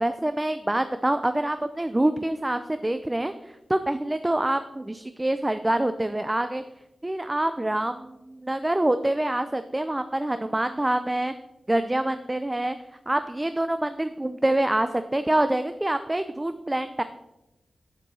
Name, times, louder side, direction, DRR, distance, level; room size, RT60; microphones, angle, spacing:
voice 1, 0.0-6.6 7.0-11.3 11.7-12.8 13.1-17.0, right 1 dB, 15° right, 10 dB, 0.3 m, -26 dB
7.4 x 6.2 x 4.2 m, 0.94 s
wide cardioid pair, 85°, 0 cm